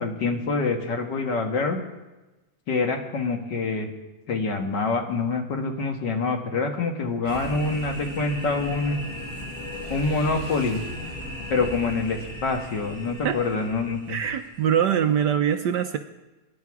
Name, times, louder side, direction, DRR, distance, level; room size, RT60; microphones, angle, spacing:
voice 1, 0.0-1.8 2.7-3.9 4.3-9.0 9.9-10.8 11.5-14.2, left 3 dB, 65° left, 3 dB, 2.2 m, -26 dB
sound 1, 7.2-15.1, equal, 15° left, 6.7 m, -37 dB
voice 2, 14.1-16.0, right 9 dB, 70° right, 7 dB, 1.2 m, -23 dB
23.0 x 10.5 x 4.8 m, 1.1 s
omnidirectional pair, 2.0 m